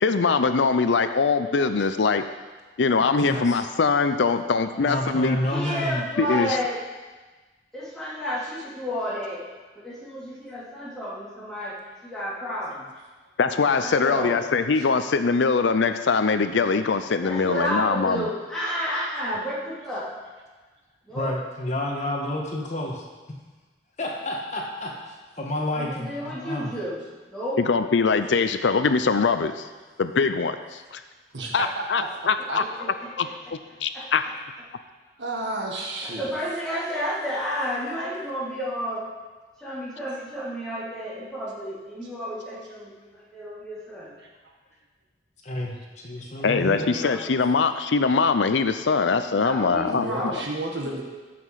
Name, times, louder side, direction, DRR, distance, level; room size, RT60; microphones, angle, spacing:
voice 1, 0.0-2.2 2.8-5.4 6.2-6.6 13.4-18.3 27.6-29.7 30.0-31.0 31.5-32.6 33.2-33.3 33.8-34.2 46.4-50.4, left 4 dB, 80° left, 10 dB, 0.5 m, -22 dB
voice 2, 3.2-3.6 4.8-6.0 21.1-23.0 24.0-26.7 45.4-46.8, left 1 dB, 40° left, -1 dB, 1.5 m, -30 dB
voice 3, 5.4-6.8 7.7-9.4 9.7-11.8 12.0-12.8 13.8-14.4 17.2-20.1 21.0-21.3 25.7-27.0 27.3-27.6 32.4-33.5 33.9-34.0 36.0-39.0 39.6-44.2 46.4-47.2 49.3-50.5, equal, 5° left, -10 dB, 3.0 m, -31 dB
voice 4, 31.3-32.1 32.5-32.6 35.2-36.3 44.4-44.5 49.9-51.0, right 2 dB, 80° right, 0 dB, 1.7 m, -31 dB
14.5 x 5.9 x 4.8 m, 1.3 s
head